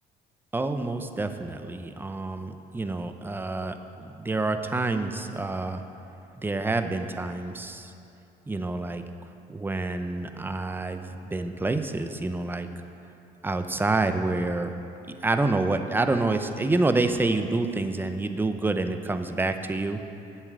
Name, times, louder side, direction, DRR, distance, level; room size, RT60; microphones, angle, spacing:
voice 1, 0.5-5.8 6.4-7.9 8.5-9.0 9.5-12.7 13.4-14.7 15.2-20.0, right 2 dB, 10° right, 8 dB, 0.6 m, -28 dB
8.2 x 7.4 x 8.0 m, 2.8 s
cardioid pair, 110°, 17 cm